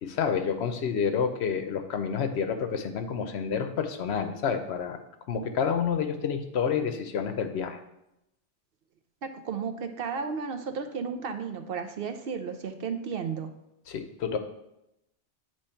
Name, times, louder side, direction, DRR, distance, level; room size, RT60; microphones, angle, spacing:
voice 1, 0.0-5.0 5.3-7.8 13.9-14.4, left 6 dB, 70° left, 7 dB, 0.9 m, -29 dB
voice 2, 9.2-13.5, right 6 dB, 60° right, 7 dB, 0.7 m, -33 dB
8.4 x 3.1 x 4.3 m, 0.85 s
omnidirectional pair, 1.2 m